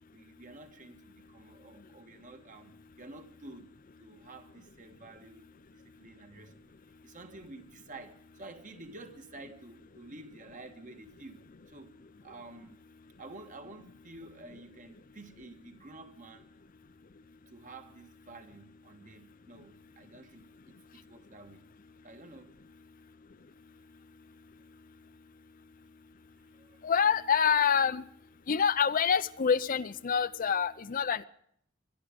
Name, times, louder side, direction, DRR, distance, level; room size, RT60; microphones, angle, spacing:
voice 1, 0.1-3.7 4.0-6.7 7.0-12.8 13.2-16.5 17.5-21.7 22.0-22.5 24.6-24.7 26.4-26.8, right 2 dB, 40° right, 1.5 m, -50 dB
voice 2, 26.8-28.0 28.5-31.2, left 7 dB, 45° left, 0.6 m, -26 dB
21.5 x 11.5 x 5.1 m
head